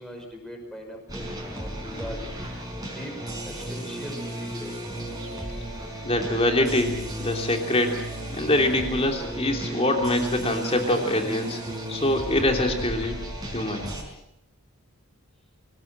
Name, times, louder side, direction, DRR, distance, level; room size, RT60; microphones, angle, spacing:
voice 1, 0.0-2.3 3.0-3.1 3.4-4.7, equal, ahead, 1 dB, 5.7 m, -40 dB
sound 1, 1.1-14.0, right 1 dB, 20° right, 5.6 m, -34 dB
voice 2, 6.0-8.0 8.3-11.6 11.9-13.2 13.5-13.9, left 1 dB, 25° left, 3 dB, 3.1 m, -24 dB
25.5 x 18.5 x 7.6 m, 0.79 s
head